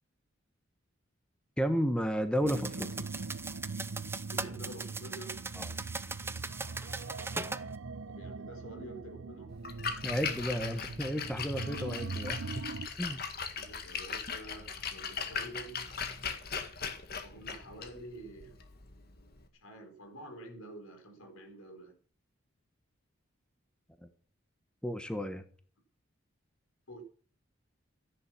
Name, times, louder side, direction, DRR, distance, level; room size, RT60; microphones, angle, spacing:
voice 1, 1.6-3.1 5.6-5.7 10.0-12.5 13.0-13.2 24.8-25.4, equal, 5° left, 8 dB, 1.1 m, -32 dB
sound 1, 2.4-12.9, right 4 dB, 75° right, 0.7 m, -42 dB
sound 2, 2.5-7.6, right 3 dB, 10° right, 0.6 m, -40 dB
voice 2, 4.3-5.4 8.1-9.5 13.5-15.8 17.2-18.6 19.5-21.9 26.9-27.0, right 1 dB, 90° left, 5 dB, 4.8 m, -48 dB
Splash splatter, 9.5-19.5, left 6 dB, 45° left, 1.9 m, -39 dB
14.0 x 10.0 x 6.0 m, 0.43 s
head